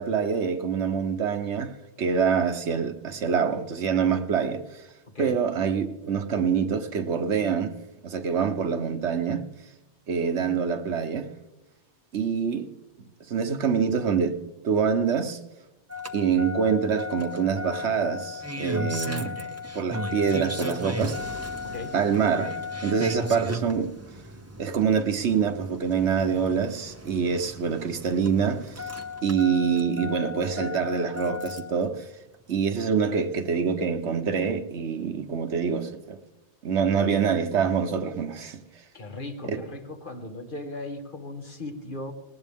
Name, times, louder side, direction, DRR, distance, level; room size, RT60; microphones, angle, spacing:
voice 1, 0.0-1.7 2.0-4.6 5.2-7.7 8.0-9.5 10.1-11.3 12.1-12.7 13.3-14.4 14.6-15.4 16.1-19.3 19.7-21.2 21.9-23.9 24.6-28.8 29.2-32.0 32.5-36.2 36.6-38.6 39.4-39.6, right 6 dB, 80° right, 1.3 m, -25 dB
Engine starting, 15.9-31.8 33.1-33.2, left 2 dB, 15° right, 0.8 m, -36 dB
voice 2, 21.6-21.9 33.1-33.3 38.9-42.1, left 2 dB, 50° left, 1.8 m, -37 dB
19.5 x 19.0 x 3.6 m
omnidirectional pair, 1.2 m